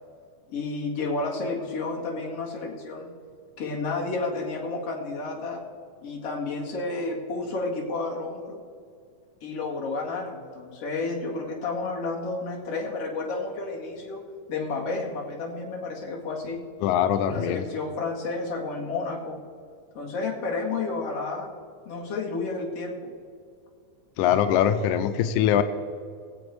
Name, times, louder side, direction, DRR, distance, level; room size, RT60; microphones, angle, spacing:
voice 1, 0.5-3.1 3.6-5.6 6.0-8.6 9.4-14.2 14.5-16.6 17.3-19.4 19.9-21.5 21.9-23.1, left 3 dB, 45° left, -2 dB, 2.9 m, -31 dB
voice 2, 16.8-17.7 24.2-25.6, left 9 dB, 90° left, 10 dB, 1.8 m, -22 dB
20.5 x 7.9 x 4.7 m, 2.2 s
omnidirectional pair, 4.1 m